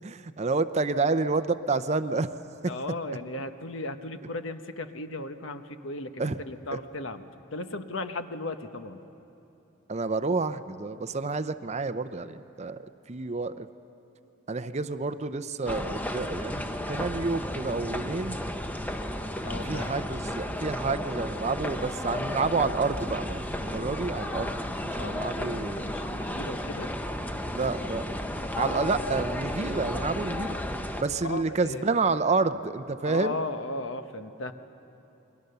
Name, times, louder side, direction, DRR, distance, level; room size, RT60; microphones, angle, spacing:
voice 1, 0.0-2.3 6.2-6.4 9.9-12.8 13.1-13.7 14.5-18.4 19.6-24.5 24.8-25.9 27.5-28.1 28.6-30.6 31.0-33.4, right 3 dB, 35° right, 12 dB, 0.6 m, -29 dB
voice 2, 2.7-7.2 7.5-9.0 19.4-20.1 25.0-26.9 31.2-31.9 33.0-34.5, left 2 dB, 70° left, 8 dB, 1.1 m, -36 dB
sound 1, 15.7-31.0, left 1 dB, 10° left, 0.8 m, -33 dB
29.0 x 22.0 x 6.8 m, 2.9 s
head